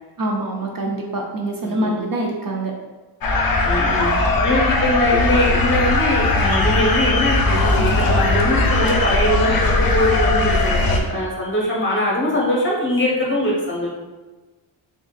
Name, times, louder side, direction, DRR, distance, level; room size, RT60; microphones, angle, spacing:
voice 1, 0.2-2.7, right 1 dB, 45° right, 1 dB, 0.5 m, -25 dB
voice 2, 1.6-1.9 3.6-13.9, left 1 dB, 25° left, -3 dB, 1.0 m, -22 dB
sound 1, 3.2-11.0, left 2 dB, 50° left, 0.6 m, -19 dB
3.9 x 3.7 x 2.4 m, 1.2 s
wide cardioid pair, 105°, 48 cm